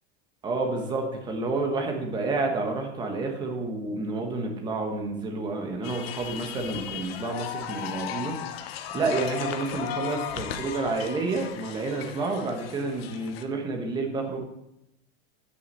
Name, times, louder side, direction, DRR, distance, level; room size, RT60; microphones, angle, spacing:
voice 1, 0.4-8.3 8.9-14.4, right 3 dB, 15° right, 3 dB, 1.1 m, -29 dB
sound 1, 5.8-13.4, left 10 dB, 65° left, 1.0 m, -36 dB
9.6 x 6.5 x 5.3 m, 0.85 s
supercardioid pair, 170°, 32 cm